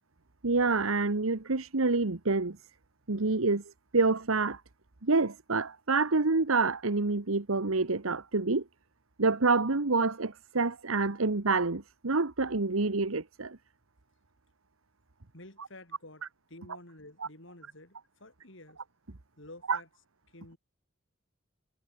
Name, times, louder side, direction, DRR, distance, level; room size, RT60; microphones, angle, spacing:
voice 1, 0.4-2.6 3.1-3.6 3.9-4.6 5.0-8.6 9.2-13.6 19.7-19.8, right 3 dB, 80° right, 1.3 m, -27 dB
voice 2, 15.3-16.2 16.5-18.8 19.4-19.9 20.3-20.6, left 1 dB, 60° left, 6.0 m, -51 dB
head